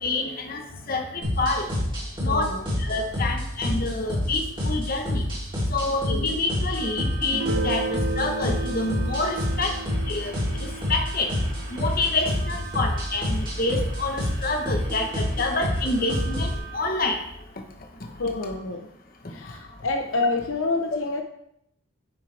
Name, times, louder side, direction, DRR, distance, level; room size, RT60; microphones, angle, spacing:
voice 1, 0.0-1.7 2.2-5.2 5.7-9.7 10.1-11.3 11.7-17.2 18.3-18.6 19.4-19.5, left 2 dB, 45° left, 3 dB, 1.2 m, -28 dB
sound 1, 1.2-16.6, left 1 dB, 25° right, 3.4 m, -28 dB
voice 2, 2.3-2.6 6.1-6.3 18.2-18.9 19.3-21.2, left 3 dB, 70° left, 3 dB, 0.8 m, -27 dB
sound 2, 6.7-16.8, right 4 dB, 45° right, 2.9 m, -43 dB
Guitar, 7.3-12.8, right 2 dB, 70° right, 1.0 m, -34 dB
9.7 x 7.1 x 3.4 m, 0.76 s
head